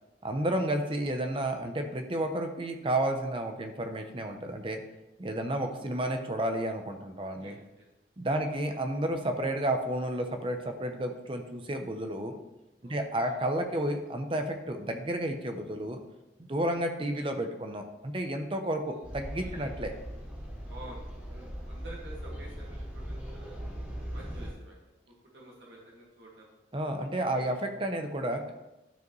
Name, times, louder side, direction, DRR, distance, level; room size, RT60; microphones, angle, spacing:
voice 1, 0.2-4.8 5.2-7.6 8.2-12.3 12.8-16.0 16.5-19.9 26.7-28.5, right 1 dB, 30° right, 5 dB, 0.7 m, -31 dB
voice 2, 7.4-7.9 8.3-8.5 12.8-13.4 18.9-19.1 19.4-19.8 20.7-23.6 24.1-24.8 25.1-26.5 27.3-27.6, right 1 dB, 85° right, -4 dB, 1.9 m, -50 dB
sound 1, 19.0-24.5, equal, 10° right, 2.2 m, -39 dB
12.5 x 4.8 x 3.1 m, 0.99 s
head